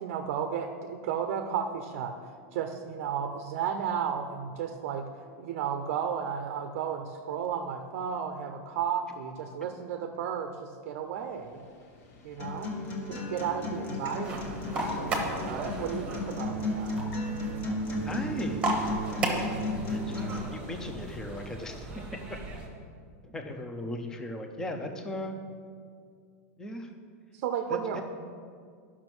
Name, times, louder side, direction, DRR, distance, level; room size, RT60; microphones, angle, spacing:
voice 1, 0.0-5.1 5.4-11.6 12.2-12.7 13.1-17.0 27.3-28.0, right 8 dB, 45° right, 6 dB, 0.6 m, -33 dB
sound 1, 11.1-16.4, left 2 dB, 65° left, 1.6 m, -46 dB
Acoustic guitar, 12.4-20.4, left 1 dB, 25° left, 1.3 m, -34 dB
sound 2, 14.2-22.7, right 2 dB, 15° right, 1.1 m, -35 dB
voice 2, 18.0-18.7 19.2-19.4 19.7-22.0 23.2-25.4 26.6-26.9 27.7-28.0, left 1 dB, 5° left, 4 dB, 0.6 m, -37 dB
10.5 x 6.1 x 6.1 m, 2.2 s
supercardioid pair, 175°, 9 cm